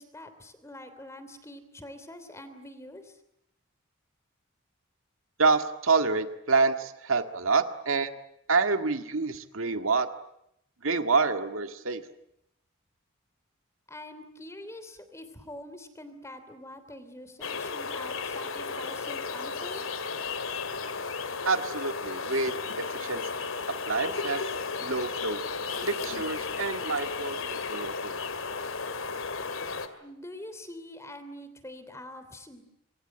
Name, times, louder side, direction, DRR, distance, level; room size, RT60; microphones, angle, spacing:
voice 1, 0.0-3.2 13.9-19.8 30.0-32.6, left 1 dB, 15° left, 10 dB, 3.1 m, -45 dB
voice 2, 5.4-8.1 8.5-10.1 10.8-12.0 21.5-23.2 23.9-24.4 24.8-25.4 25.9-28.1, right 4 dB, 85° right, 8 dB, 1.8 m, -27 dB
sound 1, 17.4-29.9, left 4 dB, 80° left, 2.4 m, -34 dB
27.0 x 23.5 x 8.8 m, 0.79 s
head